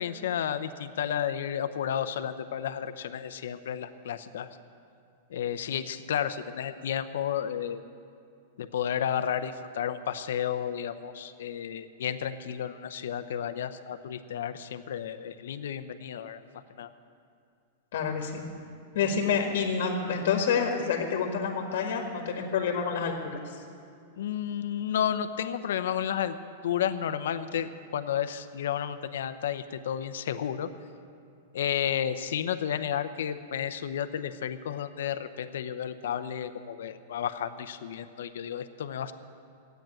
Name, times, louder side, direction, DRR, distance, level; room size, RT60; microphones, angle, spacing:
voice 1, 0.0-4.5 5.3-7.8 8.6-16.4 16.8-16.9 24.2-26.4 26.6-30.7 31.5-39.1, left 9 dB, 75° left, 11 dB, 0.7 m, -32 dB
voice 2, 17.9-18.4 18.9-23.1 23.4-23.6, left 6 dB, 60° left, 1 dB, 1.7 m, -28 dB
13.5 x 9.2 x 9.0 m, 2.4 s
supercardioid pair, 170°, 0 cm